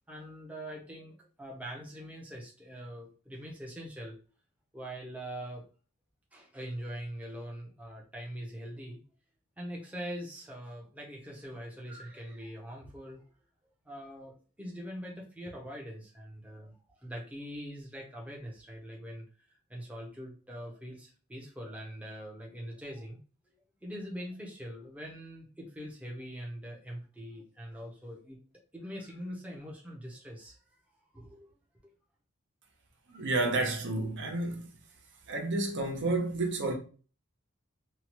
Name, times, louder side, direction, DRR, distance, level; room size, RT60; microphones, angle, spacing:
voice 1, 0.1-4.2 4.7-5.6 6.3-9.0 9.6-13.3 13.8-19.3 19.7-23.2 23.5-23.6 23.8-28.4 28.7-30.6 31.1-31.5, equal, 5° right, 0.6 m, -43 dB
voice 2, 33.1-34.7 35.3-36.7, right 2 dB, 55° right, 0.7 m, -30 dB
2.8 x 2.2 x 2.9 m
head